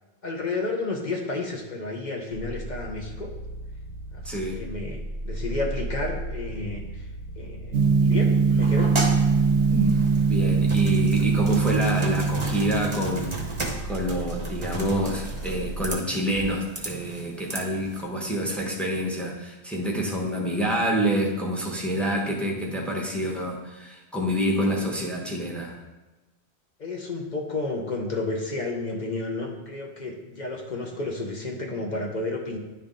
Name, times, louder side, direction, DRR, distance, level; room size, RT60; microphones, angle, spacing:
voice 1, 0.2-3.3 4.1-7.1 7.4-8.9 26.8-32.6, left 2 dB, 45° left, 1 dB, 0.8 m, -31 dB
sound 1, 2.3-15.9, right 1 dB, 75° left, 2.4 m, -36 dB
voice 2, 4.2-4.6 10.3-13.3 13.8-25.8, equal, ahead, -1 dB, 0.9 m, -27 dB
Gong, 7.7-13.6, right 5 dB, 75° right, 0.9 m, -22 dB
sound 2, 8.6-18.0, right 2 dB, 30° right, 0.9 m, -34 dB
10.0 x 3.4 x 3.7 m, 1.1 s
omnidirectional pair, 1.2 m